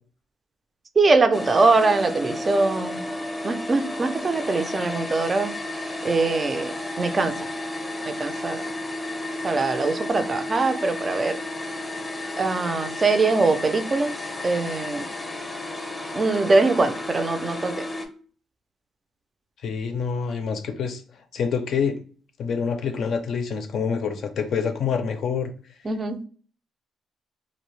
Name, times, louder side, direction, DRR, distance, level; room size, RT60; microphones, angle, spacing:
voice 1, 1.0-3.0 3.4-5.5 6.0-7.4 8.1-8.6 9.4-11.4 12.4-14.1 14.4-15.1 16.1-17.7 25.9-26.2, right 3 dB, 35° right, 9 dB, 0.4 m, -22 dB
sound 1, 1.3-18.1, left 1 dB, 15° left, 0.6 m, -32 dB
voice 2, 19.6-21.0 21.3-22.0 22.4-25.5, left 6 dB, 65° left, 6 dB, 0.4 m, -26 dB
2.6 x 2.0 x 3.0 m, 0.42 s
cardioid pair, 90°, 0 cm